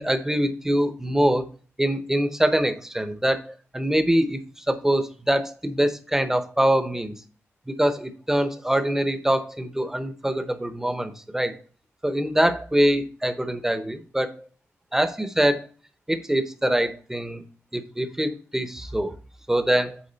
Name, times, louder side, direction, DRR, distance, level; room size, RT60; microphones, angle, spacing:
voice 1, 0.0-1.5 1.8-7.1 7.7-11.5 12.0-14.5 14.9-15.7 16.1-17.4 17.7-19.1 19.5-20.0, right 1 dB, 10° right, 9 dB, 0.8 m, -24 dB
8.8 x 3.7 x 3.9 m, 0.41 s
wide cardioid pair, 110°, 5 cm